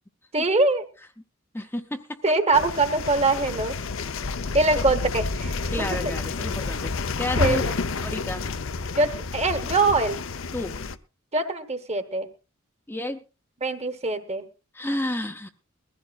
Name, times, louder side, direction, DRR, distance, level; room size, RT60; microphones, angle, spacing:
voice 1, 0.3-0.8 2.2-3.8 4.5-6.1 7.4-7.7 9.0-10.2 11.3-12.3 13.6-14.4, right 2 dB, 30° right, 9 dB, 1.3 m, -23 dB
voice 2, 1.5-2.2 5.7-7.6 8.0-8.5 10.5-10.8 12.9-13.2 14.7-15.5, left 1 dB, 10° left, 4 dB, 0.7 m, -31 dB
sound 1, 2.5-11.0, left 4 dB, 70° left, 0.7 m, -30 dB
20.5 x 15.0 x 2.5 m, 0.30 s
head